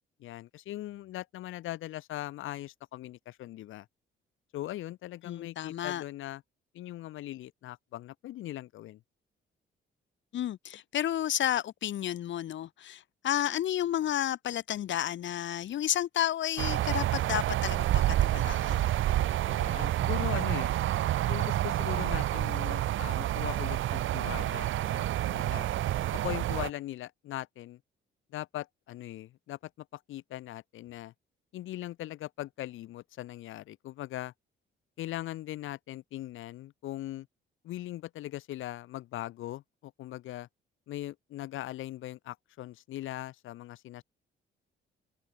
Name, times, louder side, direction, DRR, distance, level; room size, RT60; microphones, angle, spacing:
voice 1, 0.2-3.9 4.5-6.4 6.7-9.0 19.5-20.7 21.3-25.7 26.1-27.8 28.3-31.1 31.5-34.3 35.0-37.3 37.6-40.5 40.9-44.0, left 15 dB, 85° left, 3.2 m, -40 dB
voice 2, 5.2-6.0 10.3-18.9, left 11 dB, 70° left, 1.7 m, -32 dB
sound 1, 16.6-26.7, right 13 dB, 80° right, 4.0 m, -29 dB
open air
cardioid pair, 90°, 20 cm